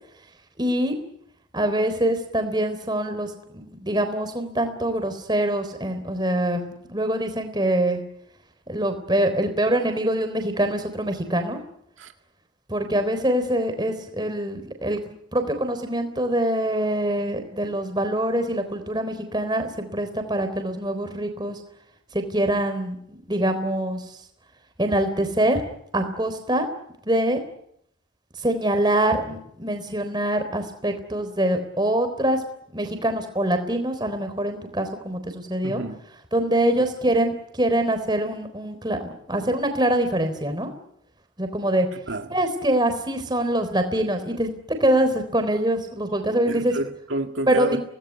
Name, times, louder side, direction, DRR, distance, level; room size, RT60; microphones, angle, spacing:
voice 1, 0.6-1.0 1.5-8.0 8.7-11.6 12.7-21.6 22.1-24.0 24.8-25.6 25.9-26.7 27.1-27.4 28.4-32.4 32.7-35.8 36.3-40.7 41.4-41.9 42.3-44.5 44.8-46.7 47.5-47.8, right 1 dB, 20° right, 3.7 m, -24 dB
voice 2, 35.6-36.0 41.9-42.4 46.5-47.8, right 2 dB, 80° right, 2.1 m, -30 dB
25.0 x 19.0 x 9.8 m
head